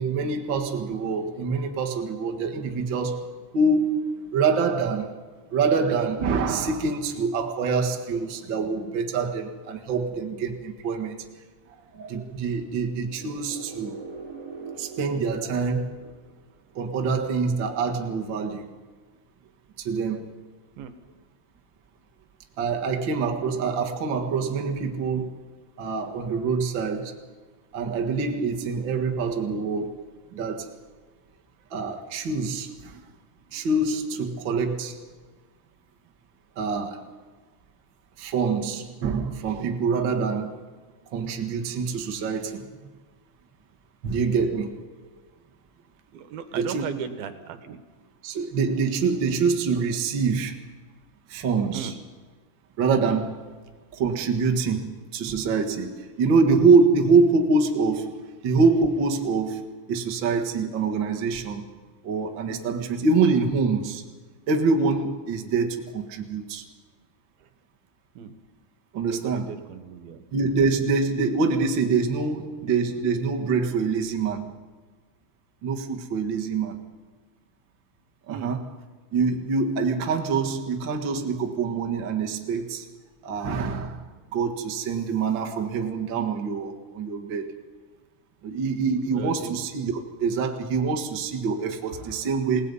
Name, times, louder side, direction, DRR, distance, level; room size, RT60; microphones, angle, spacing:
voice 1, 0.0-3.3 3.5-4.1 4.3-5.0 5.5-11.2 11.9-14.0 14.8-16.0 16.7-18.6 19.8-20.3 22.6-25.3 25.8-27.1 27.7-30.0 30.3-30.6 31.7-32.9 33.5-34.9 36.6-37.0 38.2-40.5 41.1-42.6 44.0-44.7 46.6-46.8 48.2-50.5 51.3-51.9 52.8-53.4 53.9-58.1 58.4-61.6 62.0-64.0 64.5-66.6 68.9-69.5 70.3-74.5 75.6-76.8 78.3-78.6 79.1-82.8 83.2-84.0 84.3-87.5 88.4-92.7, right 4 dB, 45° right, 2 dB, 1.6 m, -25 dB
sound 1, 12.9-16.7, right 4 dB, 25° right, 3.3 m, -42 dB
voice 2, 46.1-47.8 51.7-51.9 67.4-67.5 68.2-68.3 69.1-70.2 78.3-78.6 89.1-89.6, right 7 dB, 75° right, 9 dB, 3.0 m, -36 dB
28.0 x 18.5 x 5.5 m, 1.4 s
omnidirectional pair, 4.5 m